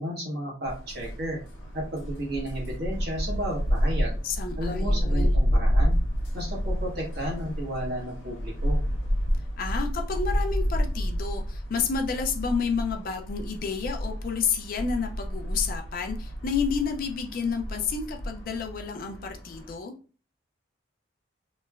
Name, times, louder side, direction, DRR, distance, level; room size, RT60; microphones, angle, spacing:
voice 1, 0.0-1.4 1.7-4.2 4.6-6.0 6.3-8.8, equal, 50° right, 1.1 m, -33 dB
sound 1, 0.6-19.8, equal, 65° left, 0.7 m, -29 dB
voice 2, 4.2-5.4 9.6-19.9, left 6 dB, 45° left, 0.3 m, -30 dB
3.0 x 2.1 x 2.3 m
head